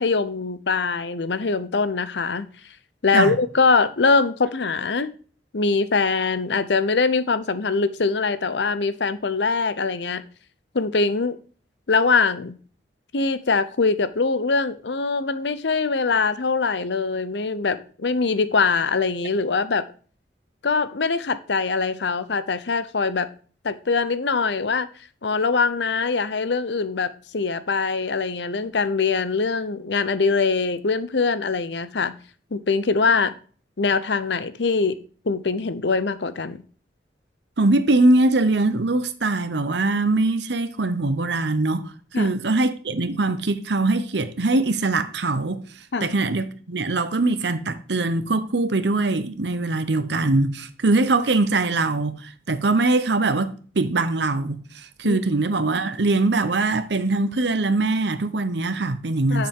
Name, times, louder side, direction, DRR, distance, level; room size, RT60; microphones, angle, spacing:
voice 1, 0.0-2.5 3.0-5.1 5.5-10.2 10.7-11.4 11.9-12.6 13.1-19.8 20.6-23.3 23.6-24.9 25.2-32.1 32.5-33.3 33.8-36.6 42.1-42.3 45.9-46.1 50.1-50.3 55.0-55.2 59.3-59.5, left 4 dB, 75° left, 0.7 m, -23 dB
voice 2, 37.6-41.8 42.1-45.6 46.0-59.5, right 2 dB, 70° right, 0.9 m, -22 dB
8.0 x 6.9 x 3.6 m
head